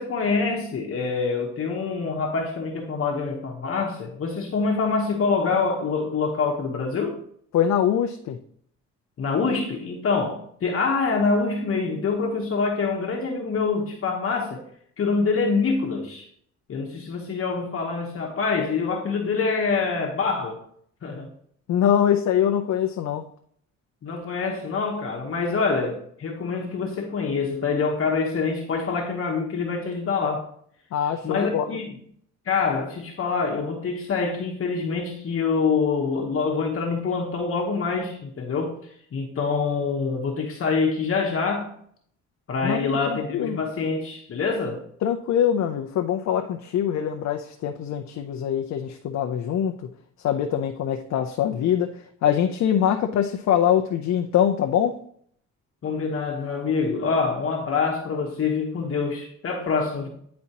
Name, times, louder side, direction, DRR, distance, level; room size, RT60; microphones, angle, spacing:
voice 1, 0.0-7.2 9.2-14.6 15.0-16.3 16.7-20.6 21.0-21.3 24.0-30.5 31.2-31.9 32.5-38.8 39.1-41.7 42.5-44.8 55.8-60.1, left 4 dB, 45° left, 1.1 m, -25 dB
voice 2, 7.5-8.4 21.7-23.2 30.9-31.8 42.6-43.6 45.0-49.7 50.2-51.9 52.2-54.9, left 9 dB, 65° left, 0.6 m, -23 dB
9.5 x 4.3 x 2.9 m
cardioid pair, 90°, 30 cm